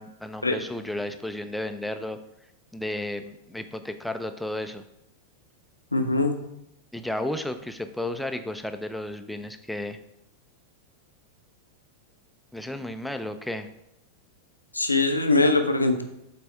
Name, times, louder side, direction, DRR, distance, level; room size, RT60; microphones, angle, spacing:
voice 1, 0.0-2.2 2.7-4.8 6.9-10.0 12.5-13.7, left 1 dB, ahead, 8 dB, 0.5 m, -33 dB
voice 2, 5.9-6.3 14.7-16.0, left 2 dB, 80° left, 6 dB, 0.6 m, -22 dB
7.4 x 3.4 x 4.4 m, 0.83 s
figure-of-eight pair, 90°, 0 cm